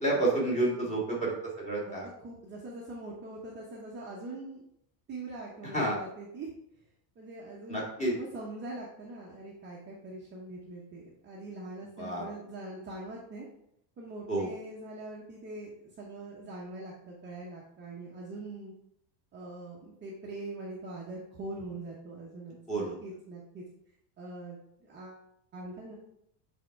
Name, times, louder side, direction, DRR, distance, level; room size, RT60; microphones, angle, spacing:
voice 1, 0.0-2.1 5.7-6.0 7.7-8.1 12.0-12.2 14.3-14.5 22.7-23.0, right 2 dB, 15° left, -4 dB, 1.8 m, -29 dB
voice 2, 2.2-4.6 5.1-6.5 7.2-13.5 14.0-18.7 19.3-23.6 24.2-24.6 24.9-25.2 25.5-25.9, right 2 dB, 20° right, -4 dB, 0.8 m, -43 dB
7.4 x 3.6 x 4.6 m, 0.75 s
cardioid pair, 165°, 50 cm